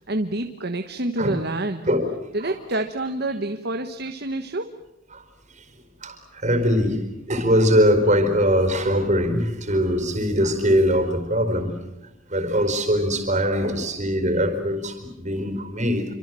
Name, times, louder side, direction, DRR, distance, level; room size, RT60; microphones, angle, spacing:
voice 1, 0.0-1.8 2.3-4.7, right 2 dB, 50° right, 7 dB, 1.4 m, -27 dB
voice 2, 6.0-7.0 7.3-11.7 12.3-16.0, equal, 35° right, 8 dB, 4.8 m, -21 dB
28.0 x 25.5 x 7.7 m, 0.93 s
head